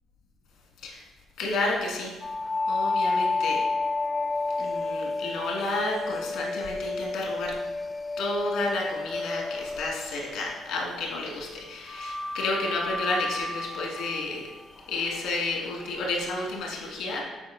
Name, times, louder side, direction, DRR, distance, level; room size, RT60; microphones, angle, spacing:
voice 1, 1.4-2.2 2.7-3.7 4.6-7.6 8.2-14.5 14.9-17.2, left 2 dB, 85° left, -1 dB, 1.6 m, -31 dB
sound 1, 2.2-11.0 11.9-16.7, left 3 dB, 25° left, 0.4 m, -31 dB
7.8 x 4.1 x 3.8 m, 1.2 s
supercardioid pair, 60°, 0 cm